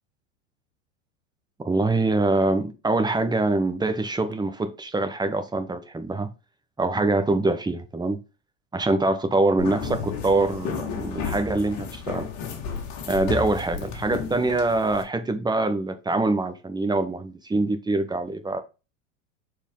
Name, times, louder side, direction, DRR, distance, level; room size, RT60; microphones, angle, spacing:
voice 1, 1.6-6.3 6.8-8.2 8.7-12.3 13.1-18.6, right 2 dB, 10° right, 1.2 m, -24 dB
sound 1, 9.6-15.0, left 6 dB, 50° left, 2.1 m, -32 dB
6.9 x 4.8 x 3.8 m
hypercardioid pair, 105°, 38 cm